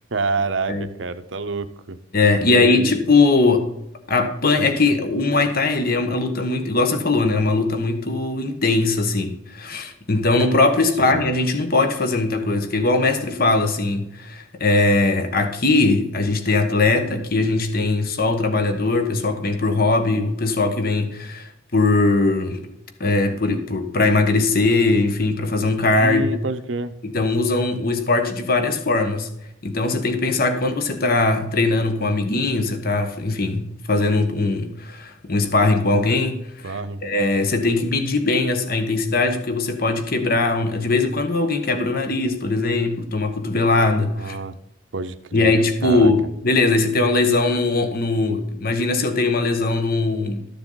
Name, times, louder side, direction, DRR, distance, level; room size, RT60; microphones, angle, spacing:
voice 1, 0.1-2.0 2.4-2.9 11.0-11.3 26.0-26.9 36.6-37.0 44.2-44.5 44.9-45.5 45.8-46.1, right 3 dB, 70° right, 0.8 m, -27 dB
voice 2, 2.1-3.7 4.1-22.6 23.0-26.2 27.0-29.3 29.6-44.4 45.3-50.5, left 3 dB, 50° left, 1.3 m, -20 dB
13.0 x 7.0 x 4.0 m
head